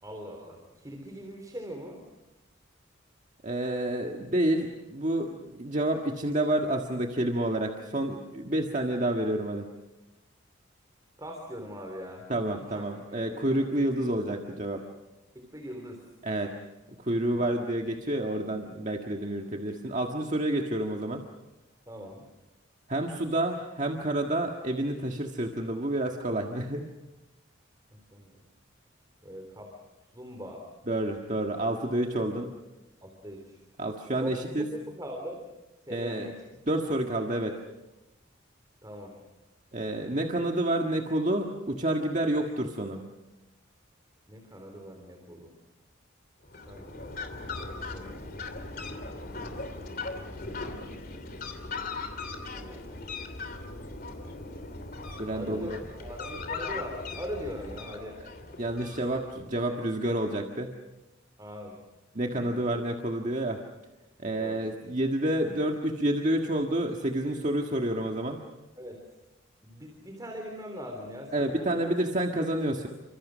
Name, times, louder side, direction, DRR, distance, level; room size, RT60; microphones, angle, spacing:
voice 1, 0.0-2.0 11.2-12.2 12.7-12.8 13.1-13.2 15.4-16.0 21.9-22.2 27.9-28.3 29.2-29.7 30.1-30.7 33.0-33.6 34.2-34.3 34.7-35.4 35.9-36.4 38.8-39.1 44.3-45.5 46.7-48.2 49.9-51.5 52.5-53.0 54.2-54.5 55.3-58.2 61.4-61.8 62.4-62.6 64.4-64.6 68.8-69.0 69.6-71.8, equal, 20° right, 2 dB, 3.6 m, -41 dB
voice 2, 3.4-9.7 12.3-14.8 16.2-16.5 17.0-21.2 22.9-26.9 30.9-32.5 33.8-34.7 35.9-36.3 36.7-37.6 39.7-43.0 55.2-55.8 58.6-60.7 62.1-63.6 64.2-68.4 71.3-72.9, right 1 dB, 35° right, 2 dB, 1.7 m, -29 dB
Fowl, 46.4-59.5, left 3 dB, 45° left, 3.0 m, -39 dB
29.5 x 26.0 x 6.3 m, 1.0 s
head